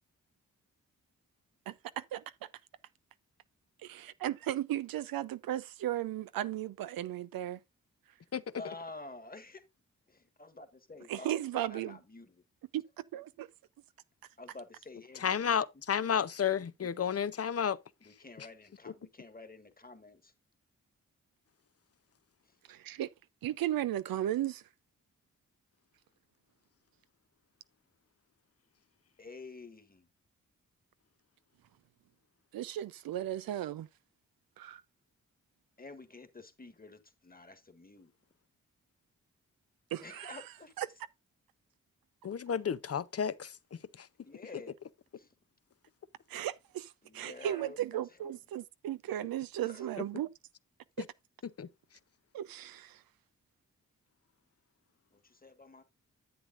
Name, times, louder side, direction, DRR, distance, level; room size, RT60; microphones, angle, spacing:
voice 1, 3.8-7.6 11.1-12.0 12.7-12.8 13.1-13.5 22.7-23.1 23.4-24.6 32.5-33.9 34.6-34.8 39.9-40.4 40.8-40.9 46.3-50.3 52.3-53.0, right 12 dB, 85° right, 0.5 m, -35 dB
voice 2, 8.6-9.6 10.1-12.4 14.4-15.3 16.8-16.9 18.0-20.3 22.4-22.6 29.2-30.1 35.8-38.1 40.0-40.7 44.0-44.7 45.1-45.3 47.0-48.3 49.6-49.9 55.1-55.8, left 3 dB, 25° left, 1.6 m, -50 dB
voice 3, 15.2-17.8 18.4-18.5 42.2-44.1 51.0-51.1 51.4-51.7, left 8 dB, 45° left, 0.6 m, -32 dB
10.5 x 8.2 x 2.5 m
supercardioid pair, 40°, 34 cm